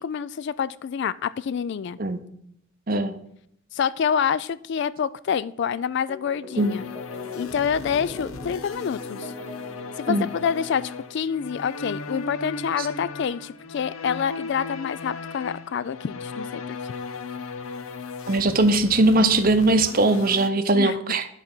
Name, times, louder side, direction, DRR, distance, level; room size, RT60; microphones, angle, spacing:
voice 1, 0.0-2.0 3.7-6.8 7.4-9.3 10.0-16.8 20.7-21.0, left 7 dB, 55° left, 17 dB, 0.3 m, -27 dB
sound 1, 6.1-11.2, left 3 dB, 10° left, 1.1 m, -41 dB
sound 2, 6.6-20.5, left 4 dB, 85° left, 0.6 m, -37 dB
voice 2, 18.3-21.3, right 2 dB, 45° right, 10 dB, 0.7 m, -20 dB
11.0 x 4.1 x 6.0 m, 0.71 s
head